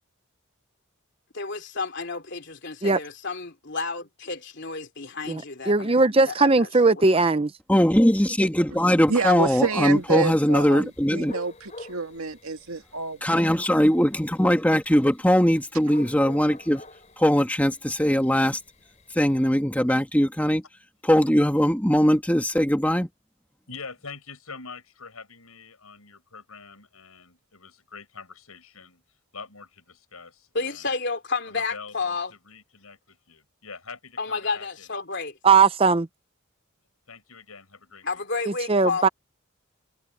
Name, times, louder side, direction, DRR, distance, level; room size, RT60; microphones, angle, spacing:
voice 1, 1.3-6.0 6.2-7.2 30.5-32.3 34.2-35.3 38.0-39.1, left 4 dB, 50° left, 3.4 m, -31 dB
voice 2, 5.3-7.5 35.4-36.1 38.5-39.1, right 4 dB, 25° right, 0.6 m, -19 dB
voice 3, 7.7-11.3 13.2-16.8 17.2-18.6 19.1-20.6 21.0-23.1, equal, 5° left, 1.6 m, -21 dB
sound 1, 9.0-19.5, left 2 dB, 30° left, 4.0 m, -48 dB
voice 4, 9.1-13.3, right 4 dB, 80° right, 2.2 m, -28 dB
voice 5, 23.7-29.0 29.3-30.9 31.5-35.0 37.1-38.2 38.7-38.8, left 4 dB, 85° left, 7.5 m, -44 dB
head